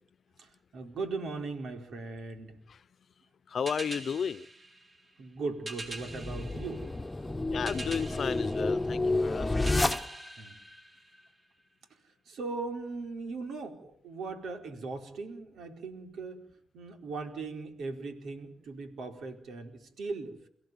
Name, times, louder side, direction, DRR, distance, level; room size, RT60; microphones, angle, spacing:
voice 1, 0.4-2.5 5.2-6.9 10.4-10.6 11.9-12.0 12.2-16.5 16.7-20.5, right 3 dB, 85° right, 4.7 m, -39 dB
voice 2, 3.5-4.5 7.5-9.7, left 7 dB, 65° left, 0.9 m, -34 dB
sound 1, 3.7-11.5, right 2 dB, 40° right, 5.0 m, -45 dB
sound 2, 5.9-10.5, left 2 dB, 15° left, 1.5 m, -30 dB
29.5 x 16.5 x 9.4 m
cardioid pair, 85°, 0 cm